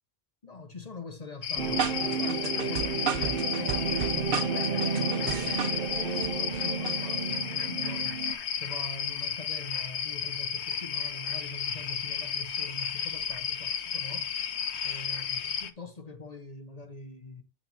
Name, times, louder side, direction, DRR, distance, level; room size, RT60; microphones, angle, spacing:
voice 1, 0.4-8.2 8.6-14.3 14.8-17.4, left 3 dB, 35° left, 1.0 m, -43 dB
sound 1, 1.4-15.7, left 7 dB, 65° left, 1.1 m, -33 dB
chill vibe, 1.6-8.3, right 6 dB, 55° right, 0.8 m, -31 dB
8.8 x 4.4 x 4.1 m
omnidirectional pair, 1.2 m